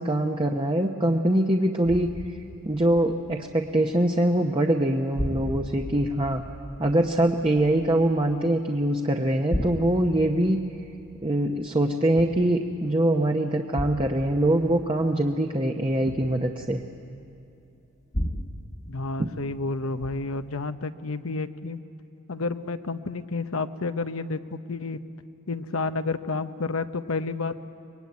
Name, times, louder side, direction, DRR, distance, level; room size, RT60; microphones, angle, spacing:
voice 1, 0.0-2.1 2.6-6.4 6.8-10.6 11.2-16.8, right 1 dB, 25° right, 2 dB, 0.9 m, -23 dB
sound 1, 1.8-4.1 4.4-4.9 5.2-8.9 9.3-12.9 13.7-17.3 18.1-19.7 20.0-20.5, equal, 35° left, 1.2 m, -36 dB
voice 2, 18.9-21.8 22.3-25.0 25.5-27.6, left 3 dB, 80° left, 9 dB, 0.9 m, -30 dB
25.0 x 21.5 x 9.5 m, 2.6 s
head